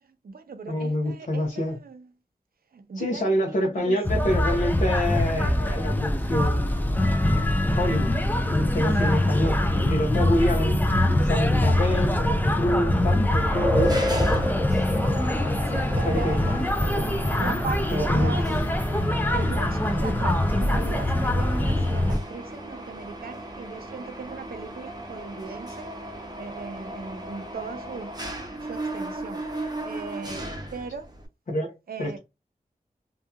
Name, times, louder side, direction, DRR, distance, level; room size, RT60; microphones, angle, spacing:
voice 1, 0.0-2.1 2.7-4.4 9.0-9.4 15.7-16.6 17.4-18.7 19.3-25.9 26.4-28.2 28.6-29.4 29.8-31.1 31.9-32.2, right 4 dB, 80° right, 0.5 m, -38 dB
voice 2, 0.7-1.8 3.0-7.0 7.8-8.1 8.4-14.4 15.4-15.6 16.0-16.4 17.0-17.1 17.9-18.3 31.5-31.7 32.0-32.2, left 1 dB, 55° left, 0.7 m, -27 dB
sound 1, 4.0-22.2, left 1 dB, 10° left, 0.4 m, -23 dB
ice fx, 11.2-22.3, left 1 dB, 5° right, 1.4 m, -34 dB
Mechanisms, 13.8-31.3, right 1 dB, 25° right, 0.7 m, -37 dB
2.8 x 2.3 x 2.3 m
wide cardioid pair, 65°, 15 cm